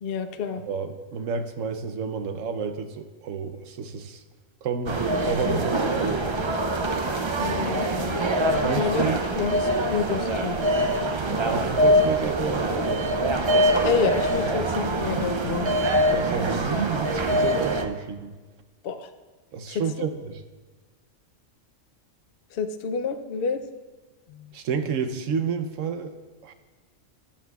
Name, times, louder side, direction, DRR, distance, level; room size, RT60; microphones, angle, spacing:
voice 1, 0.0-0.6 7.4-8.2 8.7-10.6 13.8-15.7 18.8-19.1 19.7-20.1 22.5-23.6 24.3-24.5, left 5 dB, 55° left, 7 dB, 0.7 m, -29 dB
voice 2, 0.6-4.2 4.6-6.6 8.5-9.2 11.3-13.2 14.4-14.5 16.1-18.3 19.5-20.4 24.5-26.1 26.4-26.5, right 5 dB, 80° right, 8 dB, 1.1 m, -30 dB
sound 1, 4.9-17.8, right 1 dB, 50° right, 0.3 m, -24 dB
14.0 x 10.0 x 2.4 m, 1.3 s
omnidirectional pair, 1.3 m